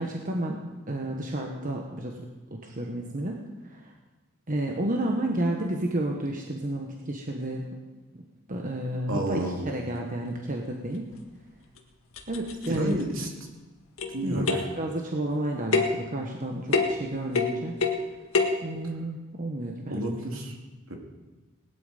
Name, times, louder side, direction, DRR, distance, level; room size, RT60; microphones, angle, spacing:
voice 1, 0.0-2.2 2.5-3.4 3.6-3.9 4.5-7.7 8.5-11.0 12.3-13.0 14.2-17.8 18.6-20.0, right 1 dB, 40° right, 1 dB, 1.4 m, -31 dB
voice 2, 9.1-9.7 12.7-13.3 14.1-14.5 19.9-20.5 20.9-21.0, right 1 dB, 70° right, 1 dB, 3.1 m, -30 dB
sound 1, 11.1-11.2 11.8-11.9 12.1-13.0 14.0-14.2 14.5-14.8 15.7-16.0 16.7-17.1 17.3-18.1 18.3-18.6, left 4 dB, 80° left, 1.9 m, -26 dB
19.0 x 11.5 x 5.3 m, 1.2 s
head